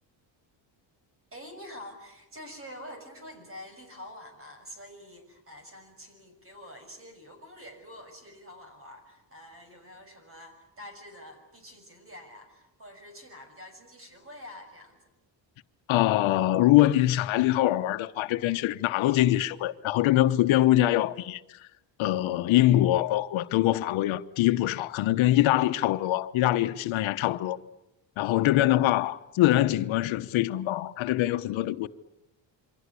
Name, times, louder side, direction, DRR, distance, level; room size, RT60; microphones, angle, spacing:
voice 1, 1.3-15.0 28.3-28.7, left 1 dB, 30° right, 6.5 m, -47 dB
voice 2, 15.9-21.6 22.0-27.6 28.2-31.9, left 15 dB, 85° left, 1.1 m, -23 dB
28.0 x 24.5 x 8.4 m
cardioid pair, 135°, 46 cm